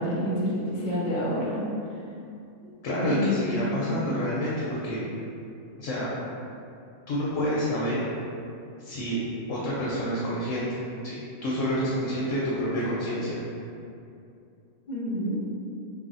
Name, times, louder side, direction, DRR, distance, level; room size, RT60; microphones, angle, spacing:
voice 1, 0.0-1.6 3.0-3.5 3.8-4.2 14.9-15.4, equal, 50° left, -6 dB, 0.5 m, -28 dB
voice 2, 2.8-5.0 5.8-6.1 7.1-8.0 8.8-9.2 9.5-10.8 11.0-13.4, equal, 70° left, -7 dB, 0.9 m, -28 dB
3.2 x 2.2 x 2.5 m, 2.5 s
omnidirectional pair, 1.5 m